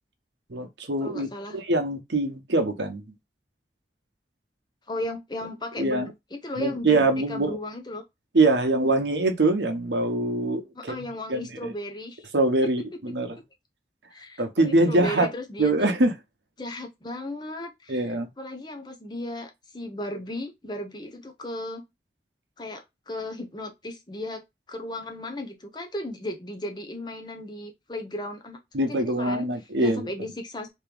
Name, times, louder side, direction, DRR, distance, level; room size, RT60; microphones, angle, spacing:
voice 1, 0.5-3.0 5.8-6.1 6.6-7.6 8.3-11.7 12.3-13.3 14.4-15.3 15.6-16.1 17.9-18.3 28.7-30.1, right 2 dB, 85° right, 0.9 m, -24 dB
voice 2, 1.0-1.6 4.9-8.0 10.7-12.3 12.6-12.7 14.1-15.9 16.6-21.8 22.6-24.4 24.7-28.6 28.9-29.5 29.8-30.7, left 1 dB, 25° left, 0.8 m, -35 dB
3.5 x 2.9 x 3.3 m
head